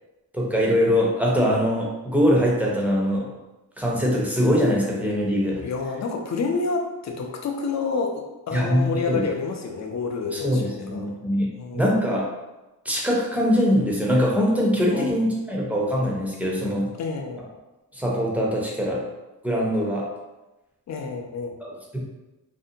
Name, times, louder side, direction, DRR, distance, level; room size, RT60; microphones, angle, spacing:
voice 1, 0.3-3.3 3.8-5.6 8.5-9.3 10.3-11.5 11.7-12.3 12.8-16.9 17.9-19.1 19.4-20.1 21.6-22.0, equal, 5° right, -3 dB, 0.5 m, -22 dB
voice 2, 5.6-11.2 11.5-11.9 14.9-15.1 17.0-17.4 20.9-21.5, left 4 dB, 50° left, 3 dB, 0.4 m, -29 dB
2.6 x 2.1 x 2.6 m, 1.0 s
wide cardioid pair, 115°, 38 cm